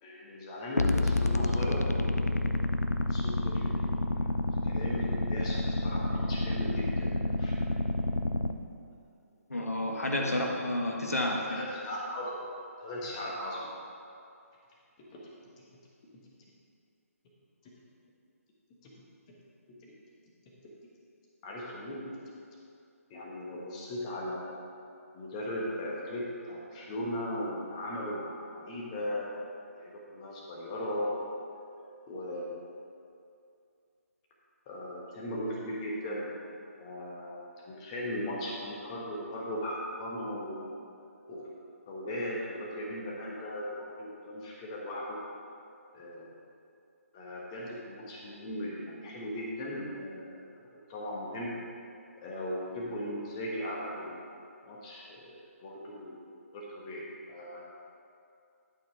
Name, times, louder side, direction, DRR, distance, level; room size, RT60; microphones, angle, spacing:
voice 1, 0.0-2.6 3.1-3.9 4.2-4.3 4.6-7.1 7.4-7.5 10.2-10.4 11.5-12.5 12.8-13.7 15.1-15.3 18.8-18.9 21.4-22.1 23.1-24.7 25.1-29.3 29.7-31.3 32.1-32.6 34.7-36.3 36.8-40.7 41.3-41.5 41.9-45.2 45.9-46.3 47.1-51.6 52.2-54.2 54.7-57.6, left 1 dB, 20° left, -4 dB, 1.4 m, -38 dB
sound 1, 0.8-8.5, left 2 dB, 85° left, 0.6 m, -29 dB
voice 2, 9.5-11.6, left 1 dB, 70° left, 0 dB, 1.3 m, -30 dB
11.5 x 4.6 x 5.6 m, 2.5 s
figure-of-eight pair, 145°, 8 cm